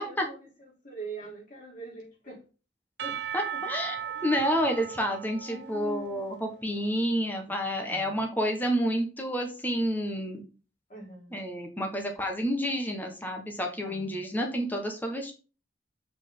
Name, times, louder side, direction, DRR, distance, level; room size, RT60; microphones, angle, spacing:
voice 1, 0.0-2.4 3.0-3.2 3.5-3.6 4.1-4.3 5.5-6.3 7.8-8.1 10.9-11.3 13.8-14.2, right 3 dB, 45° left, -3 dB, 3.5 m, -43 dB
Percussion / Church bell, 3.0-6.9, right 9 dB, 65° right, 0.4 m, -38 dB
voice 2, 3.3-4.0 4.2-10.4 11.3-15.3, equal, 10° left, 3 dB, 1.3 m, -29 dB
7.2 x 5.0 x 3.8 m, 0.34 s
head